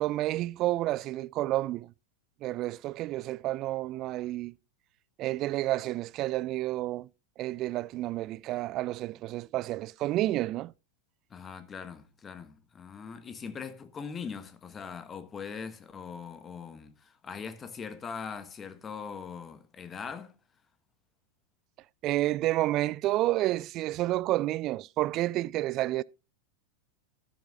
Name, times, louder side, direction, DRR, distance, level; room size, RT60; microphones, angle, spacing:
voice 1, 0.0-1.9 2.4-4.6 5.2-7.1 7.4-10.7 22.0-26.0, right 16 dB, 35° right, 0.4 m, -30 dB
voice 2, 11.3-20.3, left 6 dB, 20° left, 1.4 m, -41 dB
13.0 x 11.5 x 2.4 m
figure-of-eight pair, 90°, 0 cm